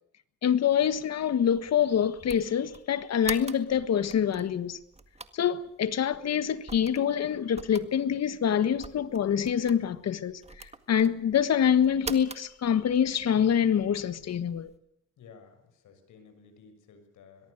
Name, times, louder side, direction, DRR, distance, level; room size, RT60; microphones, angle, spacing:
voice 1, 0.4-4.8 5.3-14.7, left 8 dB, 60° left, 1.6 m, -26 dB
sound 1, 0.9-14.8, right 3 dB, 20° right, 1.8 m, -46 dB
voice 2, 15.2-17.5, left 5 dB, 75° left, 6.5 m, -54 dB
22.5 x 22.0 x 6.7 m
cardioid pair, 90°, 30 cm